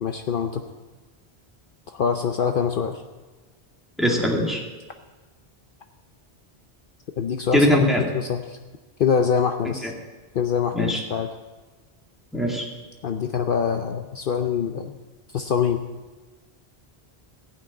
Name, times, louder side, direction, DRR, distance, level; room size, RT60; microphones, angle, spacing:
voice 1, 0.0-0.6 1.9-3.0 7.2-8.6 9.0-9.9 10.3-11.3 13.0-15.0 15.3-15.8, left 7 dB, 60° left, 6 dB, 0.8 m, -24 dB
voice 2, 4.0-4.6 7.5-8.0 9.8-9.9 10.7-11.0 12.3-12.7, equal, ahead, -1 dB, 1.9 m, -21 dB
16.0 x 6.2 x 8.9 m, 1.3 s
omnidirectional pair, 1.1 m